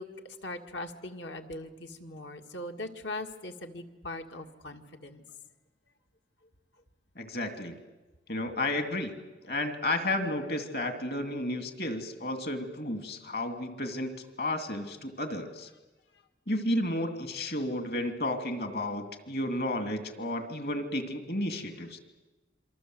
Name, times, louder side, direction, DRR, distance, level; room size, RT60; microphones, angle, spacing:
voice 1, 0.0-5.2 16.1-16.2, left 1 dB, 80° left, 5 dB, 2.1 m, -40 dB
voice 2, 7.2-7.8 8.3-9.1 9.4-15.7 16.5-22.0, left 1 dB, 60° left, 7 dB, 2.5 m, -32 dB
27.5 x 24.5 x 7.8 m, 1.1 s
head